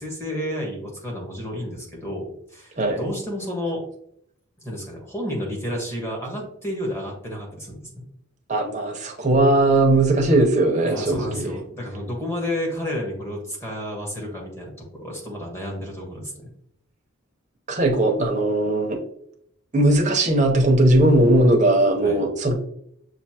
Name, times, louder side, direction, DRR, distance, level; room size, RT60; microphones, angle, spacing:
voice 1, 0.0-3.8 4.6-8.0 10.8-16.5 22.0-22.2, left 1 dB, 10° left, -1 dB, 1.3 m, -31 dB
voice 2, 8.5-11.5 17.7-19.0 19.7-22.5, right 1 dB, 35° right, 1 dB, 0.8 m, -19 dB
6.5 x 2.6 x 2.9 m, 0.69 s
head